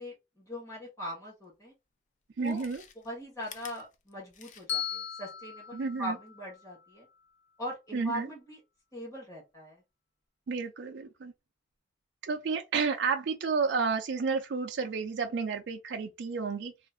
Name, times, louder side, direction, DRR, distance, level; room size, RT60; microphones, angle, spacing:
voice 1, 0.0-1.7 2.4-2.6 3.0-7.1 7.6-8.6 8.9-9.8, equal, 15° left, 1.6 m, -40 dB
Chewing mastication, 1.5-1.6 2.3-5.0 5.3-5.4, left 7 dB, 40° left, 0.4 m, -51 dB
voice 2, 2.4-2.8 5.7-6.2 7.9-8.3 10.5-11.3 12.2-16.7, right 5 dB, 60° right, 0.4 m, -31 dB
Bell, 4.7-6.9, left 9 dB, 60° left, 1.3 m, -38 dB
3.0 x 2.5 x 3.7 m
head